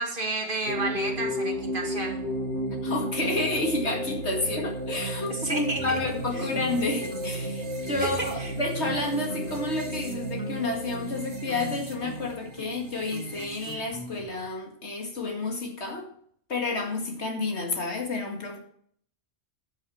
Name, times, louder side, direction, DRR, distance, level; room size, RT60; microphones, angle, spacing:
voice 1, 0.0-2.2 5.3-6.0 6.3-6.6 8.0-8.5, right 2 dB, 50° right, 2 dB, 2.3 m, -31 dB
sound 1, 0.7-14.2, equal, 80° right, 1.8 m, -33 dB
voice 2, 2.8-16.1 16.5-18.6, left 2 dB, 75° left, 2 dB, 2.4 m, -30 dB
sound 2, 5.8-6.8 7.1-7.5 7.9-8.5 8.8-9.0 9.3-9.7 10.1-14.5, equal, 20° left, 2.1 m, -42 dB
11.0 x 6.4 x 6.4 m, 0.62 s
omnidirectional pair, 1.1 m